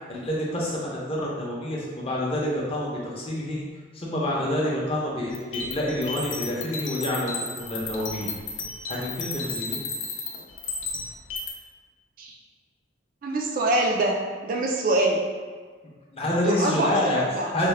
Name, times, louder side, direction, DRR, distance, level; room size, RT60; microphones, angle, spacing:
voice 1, 0.1-3.6 3.9-8.3 8.9-9.8 16.1-17.7, left 1 dB, 30° left, -4 dB, 0.6 m, -28 dB
sound 1, 5.3-11.5, left 4 dB, 85° left, 0.5 m, -33 dB
voice 2, 13.2-14.2 14.4-15.3 16.4-17.5, right 2 dB, 45° right, 0 dB, 0.3 m, -24 dB
3.5 x 2.1 x 3.2 m, 1.5 s
head